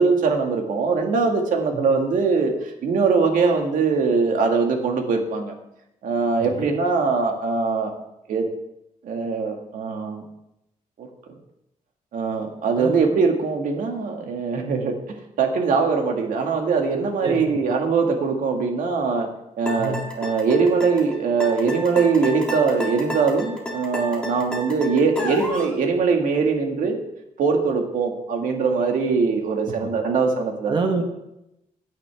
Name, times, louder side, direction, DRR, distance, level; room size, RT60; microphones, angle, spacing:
voice 1, 0.0-5.5 6.0-7.9 8.3-8.4 9.0-10.2 11.0-11.1 12.1-19.3 19.6-27.0 27.4-30.8, right 4 dB, 75° right, 3 dB, 1.9 m, -22 dB
sound 1, 19.7-25.7, equal, 5° left, 1.9 m, -31 dB
voice 2, 30.7-31.0, right 4 dB, 35° right, 4 dB, 1.3 m, -27 dB
16.5 x 9.1 x 3.5 m, 0.85 s
wide cardioid pair, 175°, 14 cm